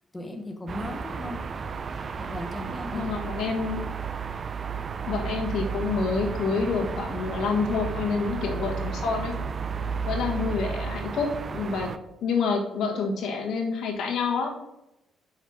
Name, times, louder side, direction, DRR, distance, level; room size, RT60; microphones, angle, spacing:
voice 1, 0.1-1.4 2.2-3.0, left 1 dB, 15° left, 4 dB, 1.0 m, -37 dB
sound 1, 0.7-12.0, right 5 dB, 45° right, 0.4 m, -33 dB
voice 2, 2.9-3.8 5.1-9.3 10.0-11.9 12.2-14.6, left 4 dB, 75° left, 2 dB, 1.4 m, -28 dB
5.9 x 5.6 x 4.9 m, 0.90 s
cardioid pair, 90°, 0 cm